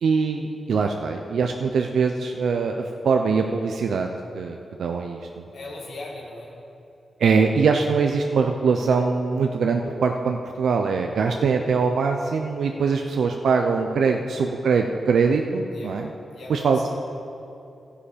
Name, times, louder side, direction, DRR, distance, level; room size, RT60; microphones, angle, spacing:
voice 1, 0.0-5.4 7.2-16.1 16.5-16.9, right 5 dB, 85° right, 3 dB, 0.6 m, -22 dB
voice 2, 5.5-6.6 14.0-14.3 15.7-16.0 16.3-16.9, left 2 dB, 85° left, -3 dB, 2.4 m, -39 dB
13.0 x 9.9 x 5.1 m, 2.8 s
wide cardioid pair, 115°, 0 cm